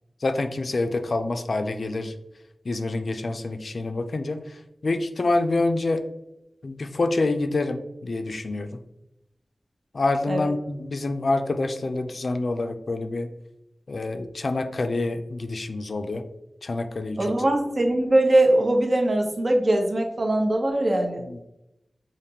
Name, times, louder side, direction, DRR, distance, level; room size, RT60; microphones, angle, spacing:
voice 1, 0.2-2.1 2.7-4.4 4.8-6.0 6.6-8.7 9.9-13.3 13.9-16.2 16.6-17.3 21.3-21.4, left 2 dB, 65° left, 7 dB, 0.4 m, -27 dB
voice 2, 17.2-21.2, right 1 dB, 50° right, 2 dB, 0.8 m, -21 dB
5.0 x 2.5 x 2.9 m, 0.88 s
wide cardioid pair, 70°, 0 cm